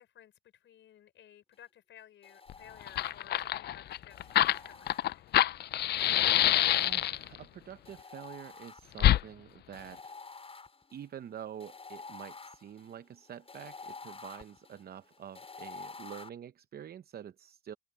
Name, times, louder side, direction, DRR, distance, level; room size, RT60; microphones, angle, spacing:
voice 1, 0.0-4.2 4.5-5.3, left 11 dB, 70° left, 5.8 m, -56 dB
sound 1, 2.2-3.5 4.1-5.4 6.0-7.3 7.8-9.2 9.7-16.3, left 4 dB, 30° left, 6.6 m, -49 dB
Fire, 2.5-2.6 2.8-7.4 9.0-9.2, left 13 dB, 55° left, 0.4 m, -26 dB
voice 2, 6.7-10.2 10.9-17.7, right 9 dB, 50° right, 0.8 m, -47 dB
cardioid pair, 90°, 20 cm